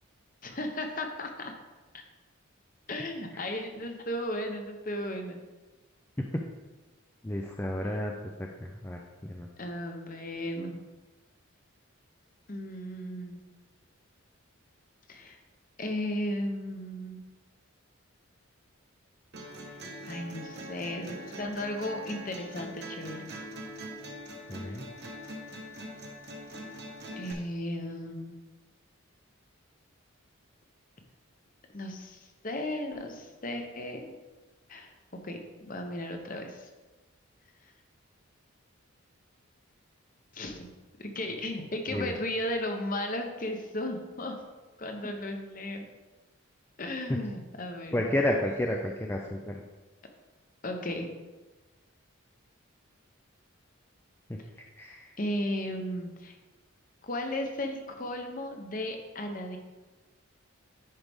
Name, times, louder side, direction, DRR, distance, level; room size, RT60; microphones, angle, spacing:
voice 1, 0.4-1.5 1.9-2.0 2.9-5.4 9.6-10.8 12.5-13.4 15.1-15.4 15.8-17.2 20.0-23.3 27.2-28.4 31.7-34.1 34.7-36.7 40.3-40.7 41.0-44.3 44.8-45.9 46.8-48.0 50.6-51.1 55.2-56.4 57.0-59.6, left 1 dB, 40° left, 4 dB, 0.9 m, -35 dB
voice 2, 7.2-8.1 8.4-9.0 9.3-9.5 24.5-24.9 41.9-42.2 47.9-49.6 54.8-55.1, left 1 dB, 10° left, 1 dB, 0.4 m, -31 dB
sound 1, 19.3-27.3, equal, 50° right, 1.1 m, -43 dB
10.0 x 4.8 x 3.6 m, 1.2 s
head